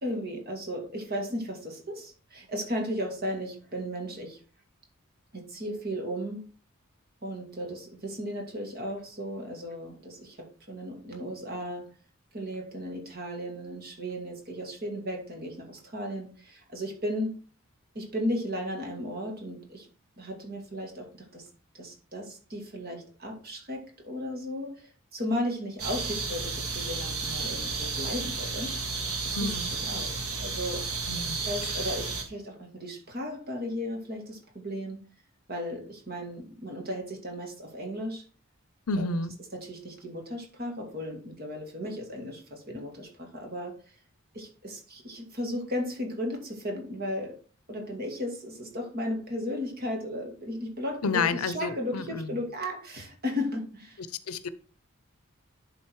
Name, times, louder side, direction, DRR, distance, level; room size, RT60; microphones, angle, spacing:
voice 1, 0.0-4.4 5.3-6.4 7.2-11.9 12.3-17.4 17.9-19.9 20.2-21.5 21.7-28.8 29.2-30.9 31.1-35.0 35.5-38.2 39.0-39.2 39.5-43.8 44.3-47.4 47.7-54.0, equal, 45° right, 2.3 m, -35 dB
sound 1, 25.8-32.2, right 4 dB, 85° right, 2.2 m, -32 dB
voice 2, 29.3-29.7 31.1-31.7 38.9-39.3 51.0-52.4 54.3-54.5, left 4 dB, 80° left, 0.7 m, -30 dB
11.0 x 3.9 x 4.6 m
head